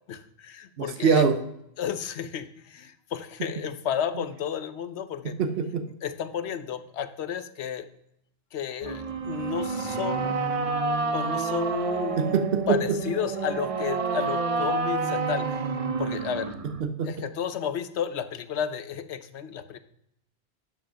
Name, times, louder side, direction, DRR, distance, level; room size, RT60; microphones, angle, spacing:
voice 1, 0.1-1.2 1.8-5.4 6.0-7.9 8.5-10.4 11.1-12.4 12.7-15.7 16.0-16.5 17.0-19.8, left 8 dB, 85° left, 11 dB, 1.0 m, -32 dB
voice 2, 0.8-1.4 4.1-4.2 5.2-5.8 12.2-13.0 16.8-17.1, right 6 dB, 65° right, 8 dB, 1.0 m, -24 dB
sound 1, 8.8-16.8, right 4 dB, 40° right, 0.6 m, -29 dB
11.5 x 5.3 x 5.7 m, 0.78 s
omnidirectional pair, 1.1 m